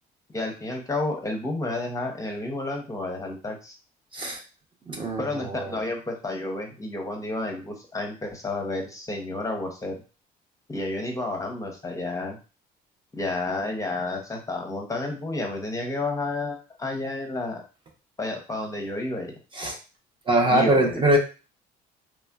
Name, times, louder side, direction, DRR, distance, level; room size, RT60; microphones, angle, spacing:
voice 1, 0.3-3.7 5.2-9.9 10.7-12.4 13.2-17.6 18.2-19.3 20.5-21.0, left 2 dB, 20° left, 2 dB, 0.6 m, -31 dB
voice 2, 4.9-5.8 19.5-19.8 20.3-21.2, right 1 dB, 30° right, 1 dB, 0.7 m, -22 dB
3.1 x 2.4 x 2.2 m, 0.32 s
cardioid pair, 110°, 17 cm